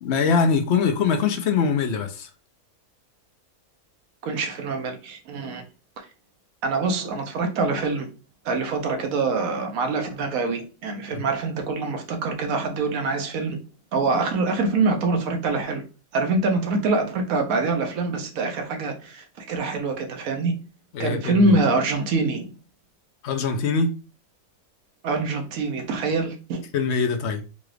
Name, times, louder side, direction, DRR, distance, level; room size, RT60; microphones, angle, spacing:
voice 1, 0.0-2.3 11.1-11.3 20.9-21.5 23.2-23.9 26.7-27.4, left 5 dB, 60° left, 0.7 m, -23 dB
voice 2, 4.2-5.6 6.0-6.1 6.6-8.1 8.4-13.6 13.9-15.8 16.1-20.6 21.0-22.5 25.0-26.6, right 3 dB, 70° right, 1.2 m, -25 dB
3.9 x 2.4 x 3.2 m
omnidirectional pair, 1.5 m